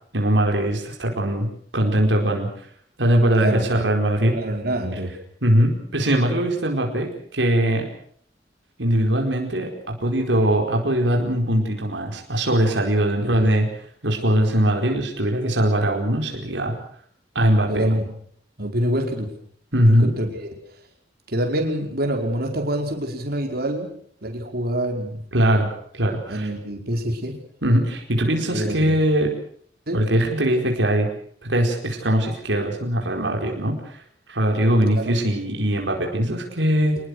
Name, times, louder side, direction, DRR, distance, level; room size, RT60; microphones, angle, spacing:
voice 1, 0.1-1.5 1.7-2.7 3.0-4.4 5.4-7.9 8.8-13.7 14.0-16.8 17.3-17.9 19.7-20.1 25.3-26.5 27.6-29.3 29.9-31.1 31.4-34.0 34.3-37.0, right 1 dB, 85° right, 2 dB, 4.7 m, -21 dB
voice 2, 3.4-3.8 4.2-5.2 13.2-13.3 17.7-18.1 18.6-19.3 19.8-20.5 21.3-23.9 24.2-25.2 26.3-27.4 28.5-29.0 29.9-30.0 35.0-35.2, right 1 dB, 60° right, 2 dB, 5.1 m, -26 dB
26.5 x 20.5 x 6.5 m, 0.62 s
head